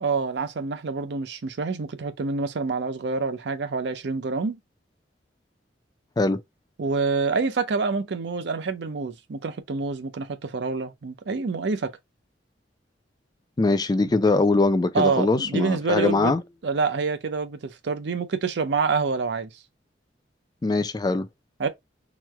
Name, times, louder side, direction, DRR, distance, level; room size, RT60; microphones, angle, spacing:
voice 1, 0.0-4.6 6.8-11.9 14.9-16.3 16.6-19.5 21.6-21.7, right 4 dB, 65° right, 0.5 m, -27 dB
voice 2, 13.6-16.4 20.6-21.3, left 3 dB, 20° left, 0.3 m, -22 dB
3.0 x 2.1 x 3.4 m
head